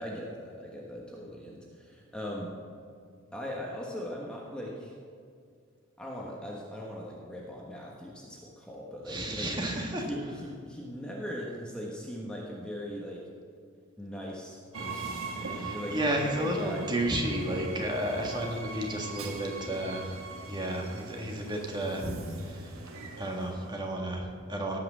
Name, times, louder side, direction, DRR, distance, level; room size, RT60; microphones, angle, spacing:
voice 1, 0.0-2.5 3.3-4.9 6.0-9.6 9.9-13.2 14.0-16.9, equal, 5° left, -3 dB, 1.3 m, -40 dB
voice 2, 9.1-10.0 15.4-20.2 20.5-22.1 22.4-22.7 23.2-24.8, right 1 dB, 20° right, 0 dB, 1.6 m, -32 dB
Train, 14.7-23.9, right 3 dB, 85° right, 1.5 m, -42 dB
17.5 x 5.9 x 7.5 m, 2.2 s
head